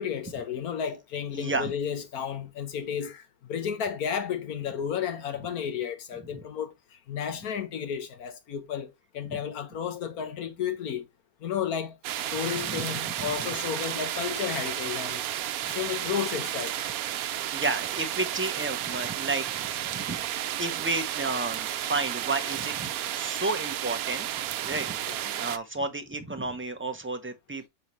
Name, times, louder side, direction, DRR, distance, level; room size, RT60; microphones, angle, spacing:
voice 1, 0.0-6.7 7.1-11.0 11.4-12.0 12.3-15.2 15.7-17.0 19.0-19.1 24.6-24.8 25.1-25.3, left 8 dB, 80° left, 1.6 m, -32 dB
voice 2, 1.3-1.7 9.3-9.4 12.6-12.9 13.3-13.5 15.6-15.7 17.5-20.2 20.6-24.3 24.6-25.0 25.4-27.7, right 3 dB, 10° right, 0.6 m, -32 dB
sound 1, 12.0-25.6, right 12 dB, 80° right, 1.1 m, -32 dB
6.4 x 5.5 x 3.1 m
omnidirectional pair, 1.5 m